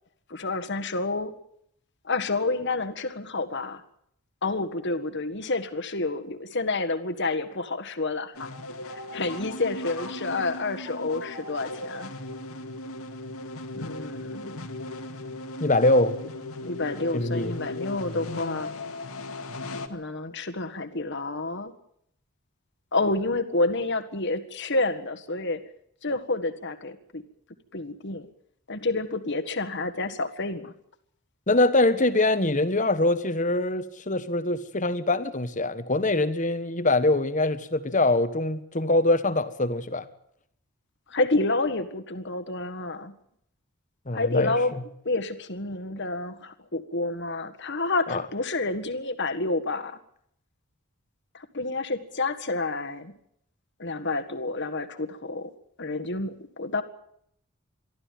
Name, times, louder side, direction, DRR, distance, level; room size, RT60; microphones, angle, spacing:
voice 1, 0.3-1.3 2.0-3.8 4.4-8.5 8.9-12.1 13.7-14.7 16.6-18.7 19.8-21.7 22.9-25.6 26.0-27.2 27.7-28.3 28.7-30.7 41.1-43.1 44.1-44.7 45.0-50.0 51.3-53.1 53.8-55.5 55.8-56.8, left 2 dB, 50° left, 9 dB, 1.8 m, -29 dB
sound 1, 8.3-19.9, left 2 dB, 75° left, 2.1 m, -37 dB
voice 2, 15.6-16.2 17.1-17.6 31.5-40.1 44.1-44.8 48.1-48.2, left 2 dB, 35° left, 11 dB, 1.4 m, -23 dB
23.5 x 14.0 x 9.4 m, 0.71 s
head